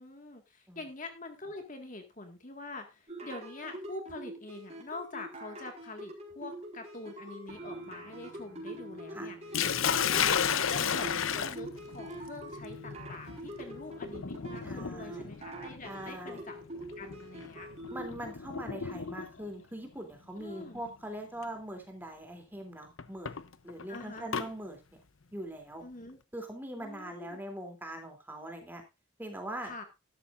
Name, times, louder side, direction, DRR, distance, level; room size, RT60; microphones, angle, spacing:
voice 1, 0.0-17.7 20.4-20.8 23.9-24.3 25.8-26.2 26.8-27.4 29.6-29.8, left 2 dB, 40° left, 5 dB, 1.9 m, -45 dB
sound 1, 3.1-18.1, right 1 dB, 30° right, 4.5 m, -44 dB
sound 2, 7.5-17.0, equal, 55° right, 4.5 m, -61 dB
Sink (filling or washing), 9.5-19.5 20.6-20.9 21.4-21.5 23.0-24.5, left 7 dB, 80° left, 0.8 m, -33 dB
voice 2, 14.6-15.3 15.8-16.4 17.9-23.3 23.6-24.8 25.3-25.8 26.3-28.8 29.2-29.7, right 1 dB, 10° right, 3 dB, 3.1 m, -42 dB
13.0 x 12.5 x 2.6 m, 0.26 s
head